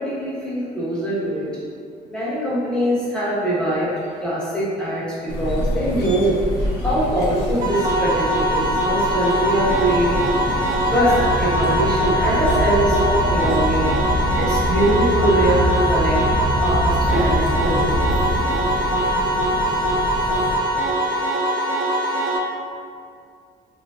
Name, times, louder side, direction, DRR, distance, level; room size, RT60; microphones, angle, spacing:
voice 1, 0.0-1.7 2.1-3.9 4.2-5.0 5.3-6.4 6.8-10.1 10.9-13.9 14.4-16.2 16.6-18.6, equal, 5° left, -10 dB, 1.0 m, -22 dB
sound 1, 5.3-20.6, equal, 70° left, 0.7 m, -28 dB
sound 2, 7.6-22.4, right 1 dB, 55° right, 0.6 m, -22 dB
sound 3, 9.5-18.4, right 1 dB, 30° left, 0.5 m, -25 dB
3.0 x 2.6 x 2.3 m, 2.3 s
cardioid pair, 110°, 17 cm